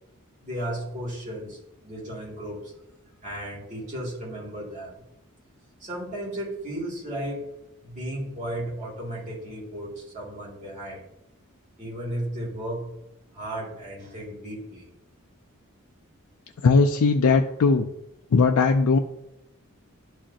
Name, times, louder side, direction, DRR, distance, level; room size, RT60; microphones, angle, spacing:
voice 1, 0.4-2.7 3.2-4.9 5.8-7.5 7.8-11.0 11.8-12.9 13.3-14.9, right 1 dB, 35° right, -7 dB, 2.8 m, -34 dB
voice 2, 16.6-17.9 18.3-19.0, left 4 dB, 80° left, 5 dB, 0.4 m, -19 dB
11.0 x 4.9 x 2.9 m, 0.90 s
head